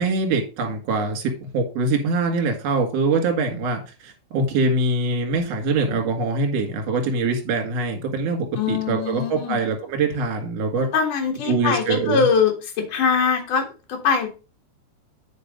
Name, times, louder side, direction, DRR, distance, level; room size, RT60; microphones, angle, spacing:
voice 1, 0.0-10.9 11.5-12.3, right 3 dB, 45° right, 4 dB, 2.4 m, -23 dB
voice 2, 8.5-9.6 10.9-14.3, left 6 dB, 55° left, 3 dB, 2.9 m, -22 dB
8.6 x 5.2 x 5.1 m, 0.31 s
omnidirectional pair, 5.4 m